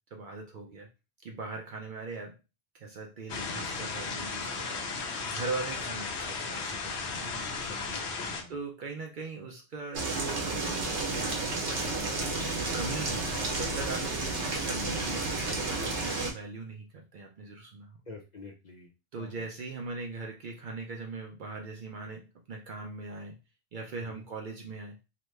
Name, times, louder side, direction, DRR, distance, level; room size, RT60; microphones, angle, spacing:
voice 1, 0.1-0.9 1.2-2.4 2.7-7.3 8.5-12.0 12.5-18.0 19.1-23.4 23.7-25.0, right 3 dB, 60° right, 1 dB, 0.6 m, -40 dB
sound 1, 3.3-8.4, left 4 dB, 80° left, 0.9 m, -35 dB
voice 2, 3.4-3.7 5.7-5.8 7.4-8.5 13.1-13.2 18.1-18.9 19.2-19.4 24.0-24.2, left 3 dB, 45° left, 0 dB, 0.7 m, -49 dB
sound 2, 9.9-16.3, right 2 dB, 85° right, 1.1 m, -31 dB
3.0 x 2.1 x 3.1 m, 0.28 s
omnidirectional pair, 1.1 m